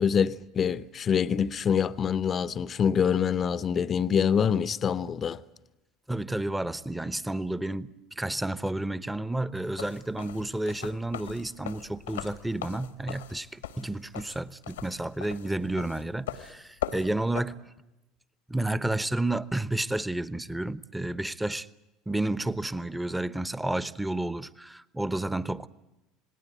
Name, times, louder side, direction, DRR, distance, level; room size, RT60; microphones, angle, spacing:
voice 1, 0.0-5.4, left 7 dB, 35° left, 0.8 m, -25 dB
voice 2, 6.1-17.6 18.5-21.7 22.1-25.7, right 1 dB, 5° right, 1.0 m, -31 dB
sound 1, 9.6-17.4, left 10 dB, 80° left, 1.4 m, -39 dB
27.5 x 19.5 x 9.3 m
figure-of-eight pair, 70°, 0 cm